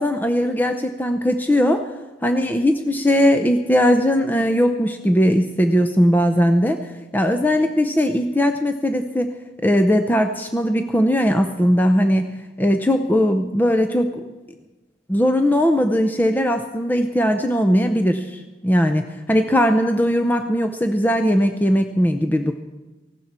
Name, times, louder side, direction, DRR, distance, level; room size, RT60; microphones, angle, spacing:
voice 1, 0.0-1.9 2.2-9.3 9.6-14.2 15.1-22.6, equal, 10° left, 6 dB, 0.6 m, -19 dB
18.0 x 16.0 x 4.3 m, 1.2 s
head